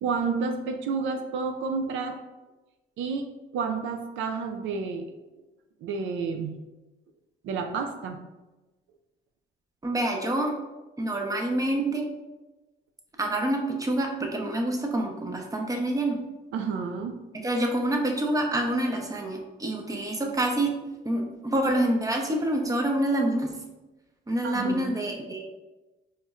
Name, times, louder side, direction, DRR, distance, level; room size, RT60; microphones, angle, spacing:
voice 1, 0.0-2.2 3.0-5.1 5.8-6.6 7.4-8.2 16.5-17.2 24.4-24.9, right 5 dB, 75° right, 6 dB, 0.4 m, -30 dB
voice 2, 9.8-10.5 11.0-12.1 13.2-16.2 17.4-20.7 21.0-23.5 24.3-25.4, right 1 dB, 15° right, 1 dB, 0.7 m, -27 dB
4.2 x 3.1 x 2.4 m, 1.1 s
cardioid pair, 90°, 20 cm